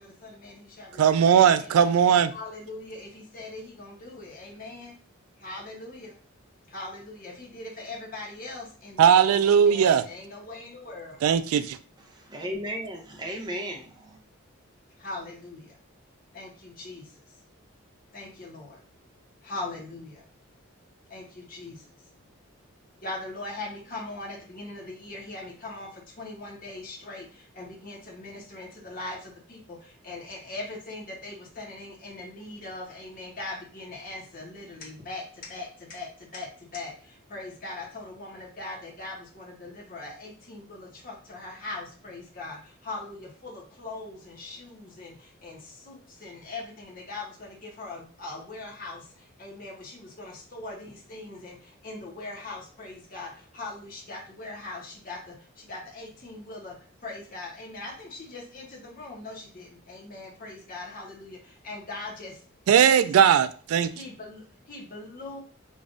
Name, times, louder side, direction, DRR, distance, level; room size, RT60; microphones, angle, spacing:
voice 1, 0.0-1.9 2.3-4.9 5.4-6.1 6.7-11.2 15.0-15.8 16.3-17.1 18.1-18.8 19.4-20.2 21.1-21.8 23.0-56.8 57.0-62.4 62.7-63.3 63.9-65.4, left 2 dB, 40° left, 1.0 m, -41 dB
voice 2, 1.0-2.3 9.0-10.0 11.2-11.8 62.7-63.9, right 8 dB, 85° right, 0.3 m, -19 dB
voice 3, 12.1-14.2, equal, 20° right, 0.6 m, -35 dB
5.1 x 2.5 x 2.5 m
head